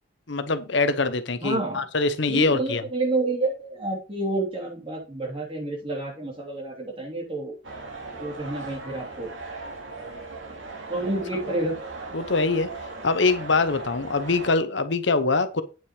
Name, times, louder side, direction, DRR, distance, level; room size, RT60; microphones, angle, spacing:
voice 1, 0.3-2.8 12.1-12.7 13.0-15.6, left 3 dB, 70° left, 0.9 m, -23 dB
voice 2, 1.4-1.8 2.3-7.5 8.1-9.3 10.9-11.7, right 2 dB, 25° right, 3.2 m, -29 dB
sound 1, 7.6-14.6, right 3 dB, 80° right, 2.6 m, -38 dB
9.1 x 5.8 x 4.8 m
head